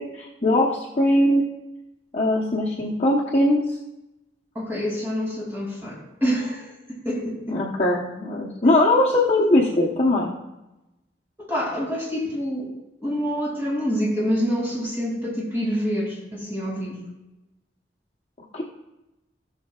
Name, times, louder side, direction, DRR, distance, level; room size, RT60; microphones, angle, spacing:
voice 1, 0.0-1.4 2.1-3.8 7.5-10.3 18.5-18.6, left 1 dB, 35° left, -5 dB, 1.0 m, -20 dB
voice 2, 4.5-7.6 11.4-12.7 13.0-17.0, equal, 15° right, -4 dB, 2.7 m, -27 dB
18.0 x 6.5 x 2.4 m, 0.97 s
head